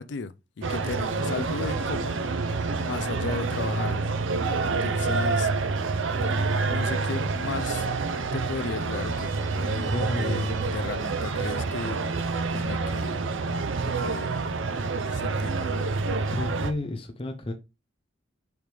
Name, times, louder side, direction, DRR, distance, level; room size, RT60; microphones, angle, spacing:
voice 1, 0.0-2.2 2.6-4.0 4.6-5.5 6.6-7.8 8.3-12.0 12.5-13.3 13.8-14.5 15.1-15.9, left 4 dB, 65° left, 0.5 m, -35 dB
sound 1, 0.6-16.7, right 3 dB, 85° right, 0.7 m, -27 dB
voice 2, 9.8-10.9 16.3-17.5, left 1 dB, 30° left, 0.7 m, -32 dB
6.3 x 5.0 x 3.4 m
head